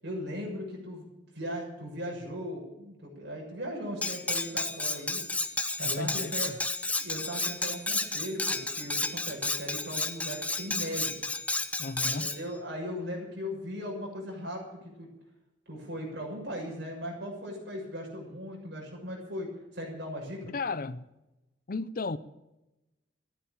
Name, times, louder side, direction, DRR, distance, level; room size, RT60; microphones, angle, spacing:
voice 1, 0.0-1.0 1.3-5.2 5.8-6.5 7.0-11.2 12.0-14.6 15.0-15.1 15.7-20.4, equal, 60° right, 6.7 m, -38 dB
Cutlery silverware, 4.0-12.4, left 2 dB, 5° left, 0.7 m, -32 dB
voice 2, 5.8-6.6 11.8-12.3 20.4-21.1 21.7-22.2, left 3 dB, 45° left, 0.5 m, -34 dB
14.5 x 10.5 x 9.0 m
head